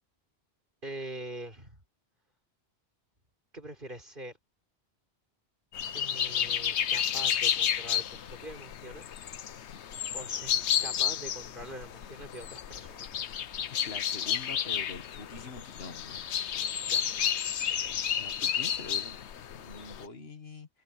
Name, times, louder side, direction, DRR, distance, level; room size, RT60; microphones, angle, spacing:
voice 1, 0.8-1.8 3.5-4.4 5.9-9.0 10.1-10.5 10.8-13.2 16.8-17.2, right 1 dB, 50° right, 4.9 m, -44 dB
sound 1, 5.7-20.1, left 9 dB, 85° left, 1.1 m, -31 dB
voice 2, 13.7-16.2 18.1-20.7, left 3 dB, 65° left, 1.9 m, -45 dB
omnidirectional pair, 1.1 m